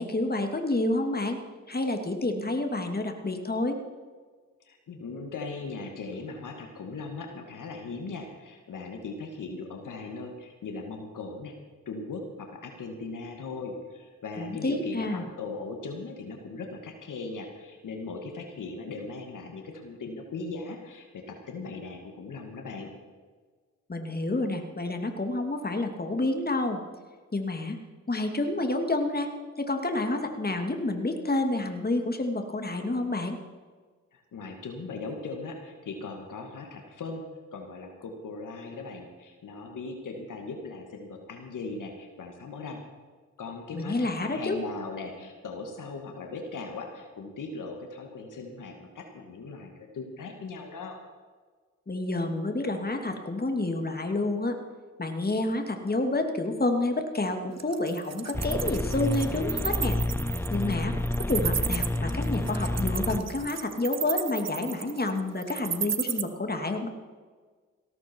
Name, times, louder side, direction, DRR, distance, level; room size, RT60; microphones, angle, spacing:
voice 1, 0.0-1.4 1.7-3.8 14.4-15.2 23.9-26.8 27.3-27.8 28.1-29.3 29.6-33.4 43.7-44.6 51.9-54.6 55.0-60.0 60.5-66.9, left 2 dB, 30° left, 5 dB, 2.5 m, -29 dB
voice 2, 4.6-11.5 11.9-22.9 34.1-37.2 37.5-42.8 43.4-51.0, left 3 dB, 70° left, 3 dB, 2.2 m, -39 dB
Wild animals, 57.6-66.2, right 8 dB, 55° right, 1.0 m, -33 dB
sound 1, 58.3-63.5, left 1 dB, 5° left, 0.9 m, -29 dB
17.5 x 13.5 x 4.7 m, 1.5 s
supercardioid pair, 45°, 32 cm